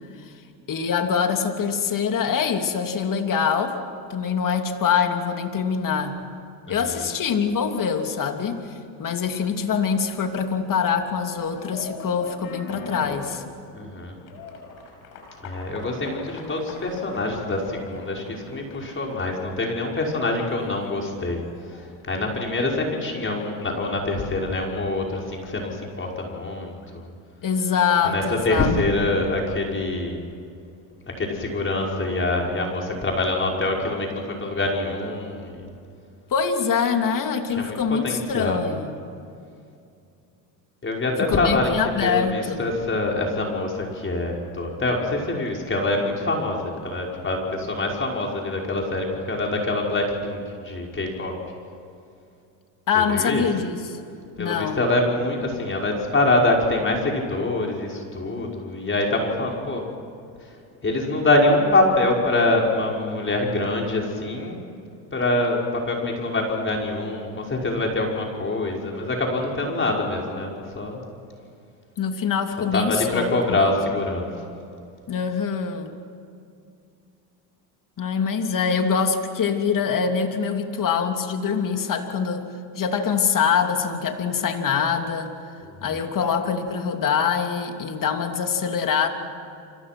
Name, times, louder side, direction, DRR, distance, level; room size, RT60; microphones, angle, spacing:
voice 1, 0.7-3.8 4.1-6.2 6.7-13.4 27.4-28.7 36.3-39.0 41.2-42.7 52.9-54.0 54.4-54.8 72.0-73.6 75.1-75.9 78.0-82.5 82.8-85.3 85.8-89.1, left 6 dB, 40° left, 5 dB, 3.0 m, -24 dB
sound 1, 11.0-23.8, left 3 dB, 80° left, 6.1 m, -43 dB
voice 2, 13.7-14.1 15.4-21.4 22.1-27.0 28.0-30.3 31.2-35.7 37.6-37.8 38.0-38.6 40.8-41.8 42.0-51.3 53.0-53.4 54.4-59.8 60.8-64.6 65.1-71.0 72.7-74.3 85.6-86.0, left 2 dB, 25° left, 0 dB, 5.7 m, -25 dB
29.5 x 25.5 x 6.2 m, 2.4 s
supercardioid pair, 85°, 48 cm